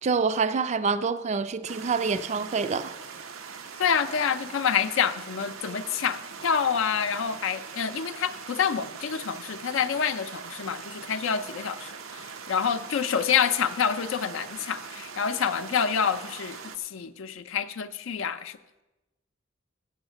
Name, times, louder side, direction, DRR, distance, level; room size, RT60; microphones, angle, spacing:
voice 1, 0.0-2.9, right 5 dB, 35° right, 0.4 m, -26 dB
sound 1, 1.7-16.8, right 6 dB, 90° right, 0.7 m, -42 dB
voice 2, 3.8-18.6, left 7 dB, 75° left, 0.5 m, -27 dB
7.9 x 7.2 x 6.8 m
head